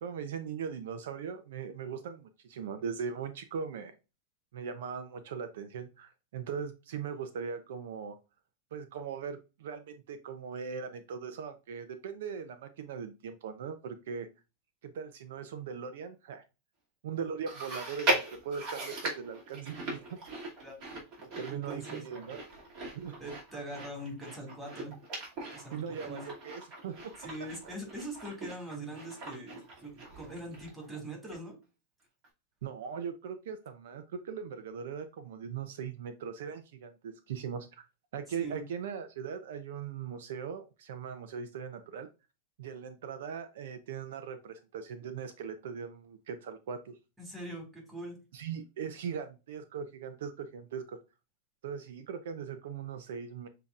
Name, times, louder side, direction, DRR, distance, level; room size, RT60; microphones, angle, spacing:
voice 1, 0.0-3.9 4.5-8.2 8.7-14.3 14.8-16.4 17.0-20.2 21.4-22.4 22.9-23.2 25.7-27.0 32.6-37.8 38.1-42.1 42.6-47.0 48.3-51.0 51.6-53.5, right 6 dB, 75° right, 9 dB, 0.6 m, -39 dB
Chewing mastication, 17.5-31.0 31.3-31.4 32.2-32.3, right 2 dB, 45° right, 2.3 m, -39 dB
voice 2, 20.6-21.0 21.5-22.0 23.2-24.9 25.5-26.2 27.2-31.6 38.4-38.6 47.2-48.2, right 1 dB, 10° right, 0 dB, 2.1 m, -42 dB
6.9 x 2.8 x 2.4 m, 0.28 s
supercardioid pair, 130°, 0 cm